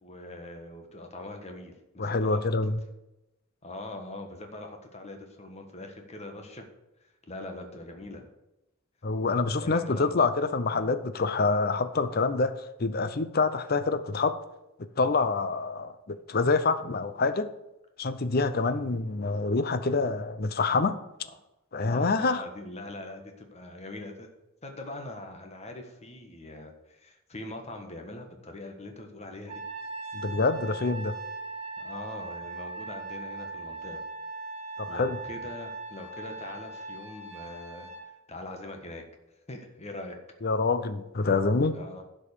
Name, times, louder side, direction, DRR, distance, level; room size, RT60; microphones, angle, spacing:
voice 1, 0.0-2.5 3.6-6.6 7.3-8.3 9.6-10.1 18.7-18.8 21.8-24.3 24.6-29.6 31.8-34.0 34.9-37.9 38.3-39.0 39.5-40.2 41.7-42.0, left 2 dB, 30° left, 4 dB, 1.4 m, -42 dB
voice 2, 2.0-2.8 9.0-12.5 12.8-14.4 14.8-17.5 18.0-21.0 21.7-22.4 30.1-31.2 34.8-35.2 40.4-41.8, left 3 dB, 45° left, 12 dB, 0.6 m, -26 dB
Trumpet, 29.5-38.0, right 3 dB, 30° right, 2.5 m, -39 dB
11.0 x 5.3 x 6.7 m, 0.95 s
head